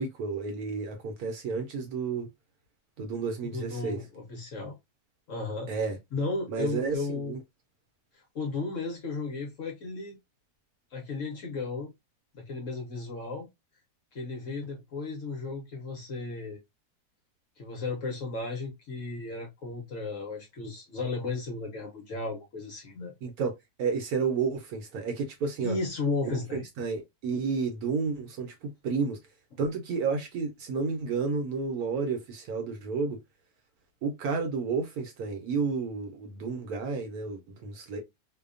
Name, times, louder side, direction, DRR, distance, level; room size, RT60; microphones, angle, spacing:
voice 1, 0.0-2.3 3.0-4.0 5.7-6.0 6.5-7.4 23.2-23.5 23.8-25.8 26.5-29.2 29.6-33.2 34.0-38.0, right 5 dB, 70° right, 1.0 m, -31 dB
voice 2, 3.4-4.8 5.3-5.7 6.1-7.4 8.1-10.2 10.9-11.9 12.3-13.5 14.1-16.6 17.6-23.1 25.6-26.6, left 3 dB, 60° left, 0.9 m, -34 dB
2.7 x 2.1 x 2.4 m
omnidirectional pair, 1.8 m